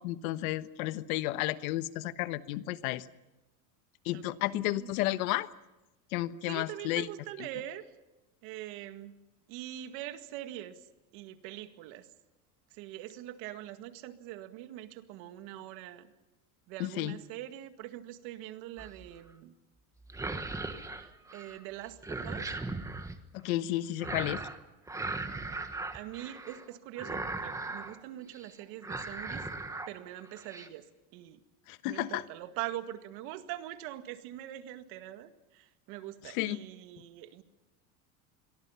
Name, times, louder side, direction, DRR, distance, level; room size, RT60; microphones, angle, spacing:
voice 1, 0.0-3.1 4.0-5.5 6.1-7.1 16.8-17.2 23.3-24.4 31.7-32.2 36.2-36.6, left 16 dB, 75° left, 13 dB, 1.3 m, -32 dB
voice 2, 4.5-5.0 6.5-7.9 8.4-9.2 9.5-10.8 11.1-12.1 12.7-16.1 16.7-19.5 20.7-22.5 25.9-29.5 29.9-30.8 31.1-31.4 31.9-37.4, right 13 dB, 55° right, 9 dB, 2.0 m, -43 dB
sound 1, 18.8-19.2 20.0-21.6 21.8-23.2 24.0-24.6 24.9-26.6 27.0-28.0 28.3-28.5 28.8-29.9 30.2-30.7, right 3 dB, 5° right, 1.3 m, -38 dB
27.5 x 23.0 x 5.8 m, 1.1 s
cardioid pair, 160°, 43 cm